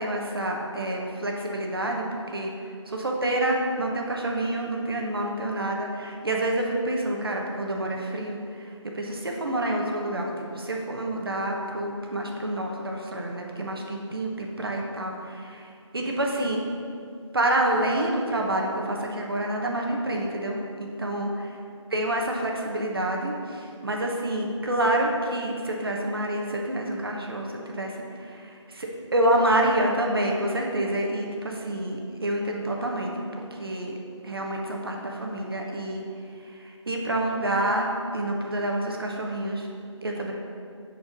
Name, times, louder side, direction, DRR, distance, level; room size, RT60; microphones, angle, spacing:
voice 1, 0.0-2.5 2.9-16.6 17.3-21.5 21.9-33.1 33.6-33.9 34.2-36.0 36.4-39.7 40.0-40.3, right 1 dB, 50° right, 0 dB, 1.0 m, -28 dB
9.6 x 4.6 x 5.2 m, 2.4 s
figure-of-eight pair, 170°, 16 cm